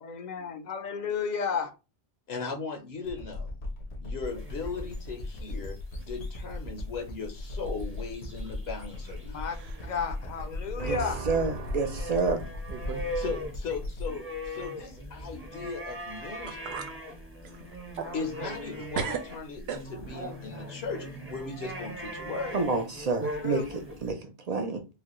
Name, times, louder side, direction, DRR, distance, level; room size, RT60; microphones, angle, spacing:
voice 1, 0.0-1.7 9.2-9.6 9.8-11.2 23.4-23.7, left 5 dB, 55° left, 0.6 m, -32 dB
voice 2, 2.3-3.5 4.0-5.8 6.1-9.4 13.1-16.8 18.1-22.6, left 5 dB, 75° left, 1.0 m, -38 dB
sound 1, 3.0-15.7, left 2 dB, 90° left, 1.5 m, -38 dB
sound 2, 4.2-24.1, equal, 15° right, 0.7 m, -41 dB
sound 3, 8.3-9.2 9.5-9.9 10.4-10.5 11.3-11.5 12.2-12.3 12.7-13.1 13.4-13.5 16.0-16.1 16.5-17.0 17.4-18.7 18.9-20.2, right 6 dB, 80° right, 0.9 m, -38 dB
voice 3, 10.8-12.5 22.5-24.9, right 4 dB, 55° right, 0.5 m, -29 dB
4.8 x 2.2 x 3.0 m
omnidirectional pair, 1.1 m